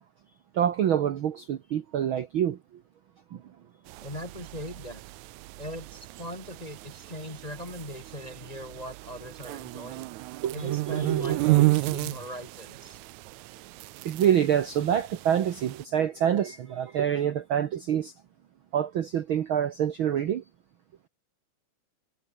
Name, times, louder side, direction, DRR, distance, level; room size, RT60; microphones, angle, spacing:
voice 1, 0.5-2.6 3.3-3.4 10.4-11.7 14.0-18.1 18.7-20.4, right 9 dB, 55° right, 1.5 m, -26 dB
sound 1, 3.9-15.8, right 19 dB, 80° right, 1.9 m, -32 dB
voice 2, 4.0-5.0 5.6-10.1 10.5-13.0, left 1 dB, 15° left, 2.2 m, -40 dB
omnidirectional pair, 3.4 m